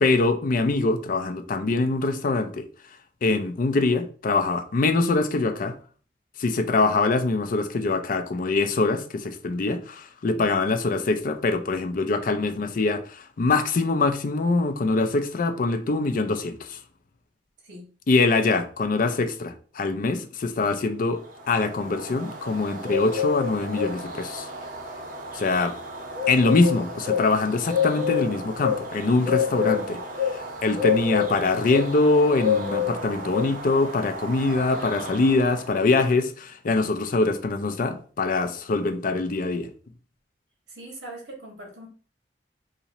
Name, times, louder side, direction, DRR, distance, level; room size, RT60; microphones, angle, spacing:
voice 1, 0.0-2.7 3.2-5.7 6.4-16.8 18.1-24.5 25.3-25.8 26.3-30.0 30.3-39.7, left 3 dB, 50° left, 0.4 m, -23 dB
sound 1, 21.2-35.8, left 6 dB, 50° right, 1.0 m, -29 dB
voice 2, 29.1-30.0 40.7-41.9, right 1 dB, 80° right, 1.3 m, -42 dB
2.9 x 2.7 x 4.0 m
head